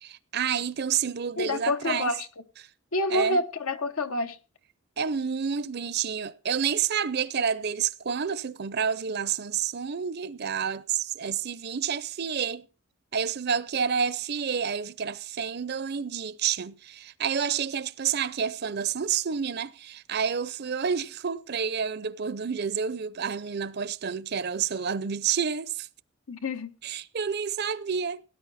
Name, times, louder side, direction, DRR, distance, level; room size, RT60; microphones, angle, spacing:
voice 1, 0.0-2.1 3.1-3.4 5.0-12.7 13.1-25.9 26.8-28.2, right 7 dB, 50° right, 0.6 m, -29 dB
voice 2, 1.4-2.3 2.9-4.4 26.3-26.7, left 2 dB, 80° left, 1.2 m, -28 dB
18.0 x 9.9 x 4.1 m
head